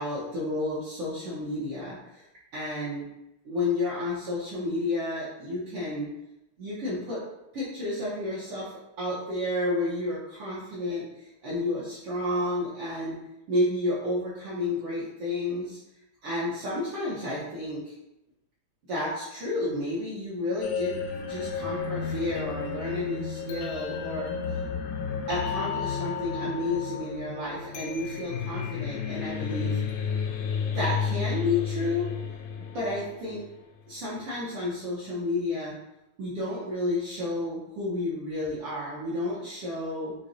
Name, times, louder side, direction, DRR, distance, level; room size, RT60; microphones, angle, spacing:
voice 1, 0.0-2.2 2.5-3.1 3.4-6.1 6.6-7.2 7.5-13.2 13.5-15.8 16.2-17.9 18.9-21.0 21.3-24.6 25.3-29.8 30.7-32.1 32.7-33.4 33.9-35.8 36.2-40.1, left 2 dB, 65° right, -9 dB, 1.5 m, -31 dB
sound 1, 20.6-33.6, left 6 dB, 80° left, 1.5 m, -32 dB
6.3 x 2.3 x 2.5 m, 0.88 s
omnidirectional pair, 3.5 m